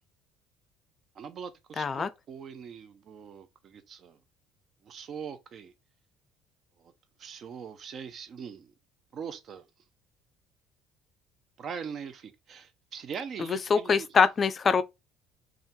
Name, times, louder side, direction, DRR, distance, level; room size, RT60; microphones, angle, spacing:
voice 1, 1.1-4.2 4.8-5.7 6.8-6.9 7.2-8.7 9.1-9.7 11.6-14.1, right 7 dB, 50° right, 0.5 m, -41 dB
voice 2, 1.8-2.1 13.5-14.8, left 5 dB, 35° left, 0.4 m, -24 dB
2.6 x 2.3 x 3.6 m
supercardioid pair, 95°, 0 cm